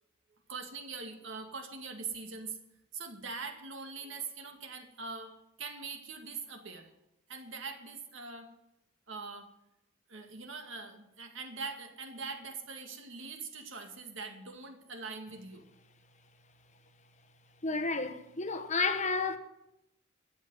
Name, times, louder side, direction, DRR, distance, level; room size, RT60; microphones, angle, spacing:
voice 1, 0.5-2.6 2.9-6.9 7.3-8.5 9.1-9.5 10.1-15.7, right 4 dB, 65° right, 2.1 m, -42 dB
voice 2, 17.6-19.4, left 4 dB, 35° left, 1.0 m, -31 dB
13.5 x 8.6 x 9.6 m
head